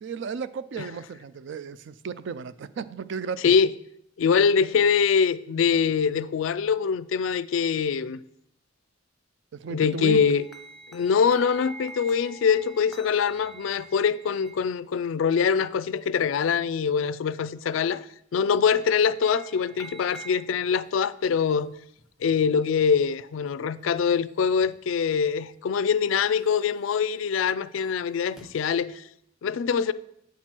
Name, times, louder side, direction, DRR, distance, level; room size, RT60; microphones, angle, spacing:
voice 1, 0.0-3.5 9.6-10.2, right 6 dB, 65° right, 0.4 m, -34 dB
voice 2, 4.2-8.2 9.7-10.4 10.9-18.1 18.3-21.7 22.2-29.1 29.4-29.9, left 6 dB, 80° left, 0.4 m, -24 dB
sound 1, 10.0-14.6 18.5-20.5 20.8-20.9 21.3-21.4 21.6-21.7 22.0-22.1 22.4-22.5 22.8-23.1 23.5-23.6 23.9-24.1 24.6-24.7 25.4-25.5 25.9-26.9 27.6-28.6, right 2 dB, 5° right, 0.9 m, -47 dB
8.2 x 6.0 x 4.5 m
head